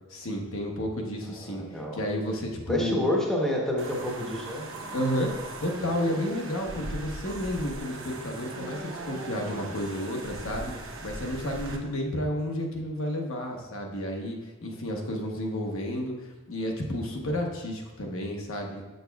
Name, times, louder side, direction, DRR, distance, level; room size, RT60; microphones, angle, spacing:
voice 1, 0.1-3.0 4.9-5.3 5.6-10.7 11.0-18.8, equal, 60° left, 1 dB, 0.9 m, -31 dB
voice 2, 1.4-2.0 2.7-4.6, left 1 dB, ahead, -2 dB, 0.9 m, -28 dB
sound 1, 3.8-11.8, right 2 dB, 60° right, 0.9 m, -39 dB
8.0 x 6.5 x 2.3 m, 1.2 s
head